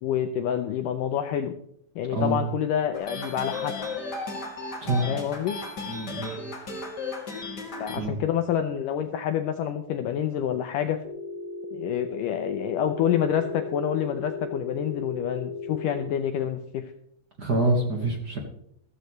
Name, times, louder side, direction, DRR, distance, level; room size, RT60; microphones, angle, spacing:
voice 1, 0.0-1.5 2.0-3.7 5.1-5.6 7.8-11.0 11.7-16.9, left 9 dB, 85° left, 7 dB, 1.9 m, -27 dB
voice 2, 2.1-2.4 4.8-5.1 5.9-6.4 8.0-8.1 17.4-18.4, right 1 dB, 55° right, 1 dB, 1.1 m, -26 dB
sound 1, 2.9-8.0, left 3 dB, 30° left, 2.6 m, -35 dB
Telephone, 11.0-16.0, left 4 dB, 20° right, 4.1 m, -36 dB
14.5 x 13.5 x 3.2 m, 0.70 s
omnidirectional pair, 4.5 m